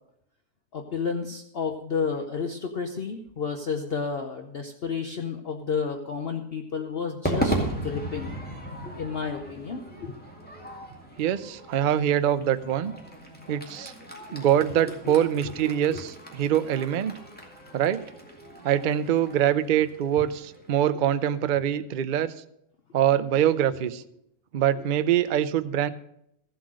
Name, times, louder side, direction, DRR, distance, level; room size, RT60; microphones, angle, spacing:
voice 1, 0.7-8.3 8.8-10.1 15.0-15.2 15.9-16.0 20.2-20.3, left 5 dB, 50° left, 5 dB, 0.9 m, -31 dB
Crowd / Fireworks, 7.2-21.6, right 1 dB, 5° left, 2.0 m, -36 dB
voice 2, 11.2-12.9 13.5-13.9 14.3-17.1 17.7-18.0 18.6-22.3 22.9-24.0 24.5-25.9, right 10 dB, 90° right, 12 dB, 0.4 m, -24 dB
14.0 x 7.7 x 6.2 m, 0.75 s
omnidirectional pair, 1.6 m